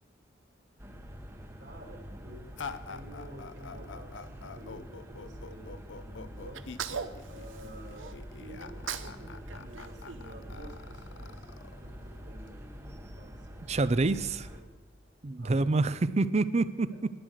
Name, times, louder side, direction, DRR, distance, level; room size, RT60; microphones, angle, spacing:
sound 1, 0.8-14.6, equal, 15° right, 1.0 m, -46 dB
voice 1, 1.6-6.7 7.3-11.5 11.8-12.8 13.2-13.6 14.5-14.8 15.4-15.7, right 1 dB, 65° right, 2 dB, 2.7 m, -50 dB
sound 2, 2.6-12.5, left 5 dB, 70° left, 0.6 m, -45 dB
Sneeze, 6.5-8.1 8.6-9.2 9.5-10.9, right 7 dB, 85° right, 0.7 m, -40 dB
voice 2, 13.7-14.5 15.2-17.1, right 3 dB, 35° right, 15 dB, 0.5 m, -27 dB
11.0 x 11.0 x 6.4 m, 1.3 s
head